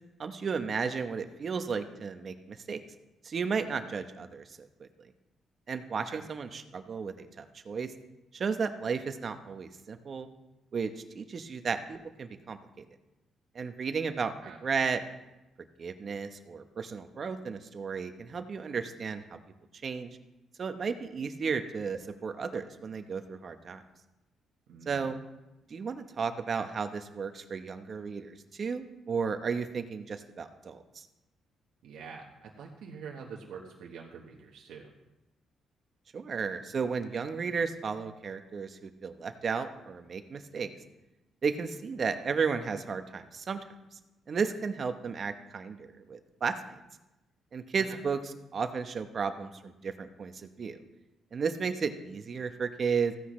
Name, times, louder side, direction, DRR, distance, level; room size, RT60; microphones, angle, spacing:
voice 1, 0.2-2.8 3.2-5.1 5.7-7.9 8.3-10.3 10.7-12.9 13.5-14.3 14.6-15.0 15.8-19.2 19.8-20.2 20.6-23.8 24.9-25.2 25.7-31.1 36.1-40.7 41.4-43.6 44.3-46.7 47.5-48.2 48.5-50.8 51.3-53.1, right 5 dB, 45° right, 8 dB, 1.0 m, -34 dB
voice 2, 14.4-14.8 24.7-25.1 31.8-34.9 47.9-48.0, right 6 dB, 80° right, -1 dB, 1.2 m, -46 dB
15.5 x 9.8 x 3.2 m, 0.99 s
cardioid pair, 90°, 0 cm